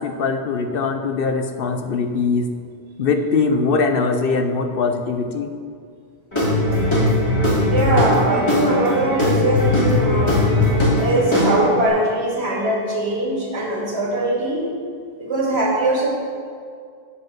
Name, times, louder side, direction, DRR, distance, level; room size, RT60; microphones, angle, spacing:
voice 1, 0.0-2.5 3.0-5.5, left 4 dB, 60° left, 7 dB, 0.8 m, -21 dB
Guitar / Drum, 6.3-11.9, left 1 dB, 25° left, 2.5 m, -19 dB
voice 2, 7.7-10.4 11.0-14.6 15.2-16.1, right 1 dB, 75° right, -3 dB, 2.1 m, -21 dB
8.4 x 5.2 x 7.3 m, 2.2 s
omnidirectional pair, 1.1 m